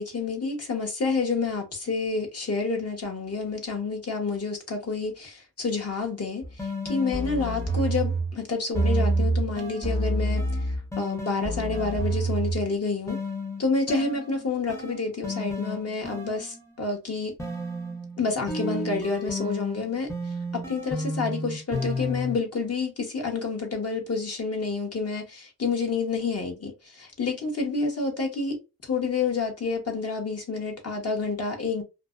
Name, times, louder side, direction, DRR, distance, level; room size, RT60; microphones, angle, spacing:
voice 1, 0.0-13.2 13.6-17.3 18.2-20.1 20.5-28.6 28.8-31.8, left 4 dB, 45° left, 1.1 m, -29 dB
sound 1, 6.4-8.4 8.7-12.7 13.1-16.8 17.4-22.4, right 1 dB, 10° left, 0.7 m, -29 dB
2.5 x 2.1 x 2.4 m
cardioid pair, 60°, 35 cm